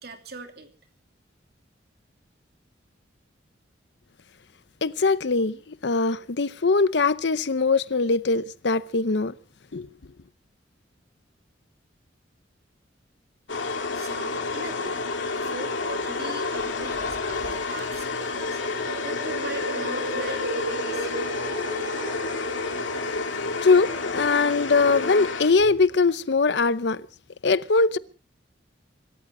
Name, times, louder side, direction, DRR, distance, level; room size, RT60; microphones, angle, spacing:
voice 1, 0.0-0.7 13.9-15.0 15.3-18.6 19.0-21.2, right 3 dB, 55° right, 2.9 m, -40 dB
voice 2, 4.8-9.3 9.7-9.9 22.7-23.2 23.6-27.0 27.4-28.0, left 4 dB, 65° left, 0.7 m, -22 dB
sound 1, 13.5-25.9, left 3 dB, 85° left, 2.6 m, -30 dB
sound 2, 16.6-23.1, right 2 dB, 85° right, 2.4 m, -36 dB
25.5 x 14.0 x 3.8 m
head